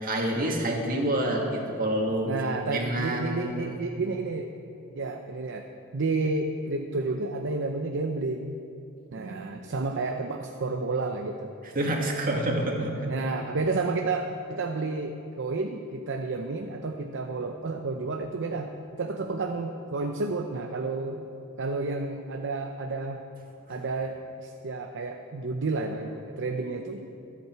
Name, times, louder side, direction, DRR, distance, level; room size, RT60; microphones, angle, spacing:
voice 1, 0.0-2.3 2.7-3.7 9.2-9.3 11.7-13.1 23.7-23.8, right 1 dB, 40° right, 0 dB, 2.0 m, -28 dB
voice 2, 2.3-4.5 4.9-8.6 9.1-11.5 13.1-21.2 21.6-23.3 23.7-27.1, right 3 dB, 55° right, 4 dB, 0.7 m, -31 dB
25.0 x 8.5 x 4.6 m, 2.7 s
head